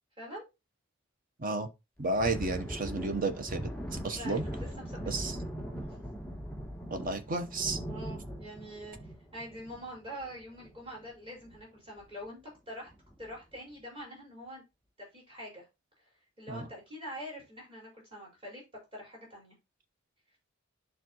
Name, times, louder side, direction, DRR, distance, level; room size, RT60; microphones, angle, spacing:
Thunder, 2.0-11.1 11.4-11.6 12.0-12.2 12.9-13.3, equal, 5° left, 2.6 m, -40 dB
voice 1, 2.0-4.4 5.1-5.4 6.9-7.8 16.5-16.6, right 2 dB, 45° right, 0.9 m, -32 dB
voice 2, 4.1-5.4 7.8-9.0 9.3-12.9 13.2-14.6 15.0-15.6 16.4-18.6 18.9-19.5, equal, 25° right, 4.9 m, -45 dB
11.0 x 3.7 x 3.0 m
head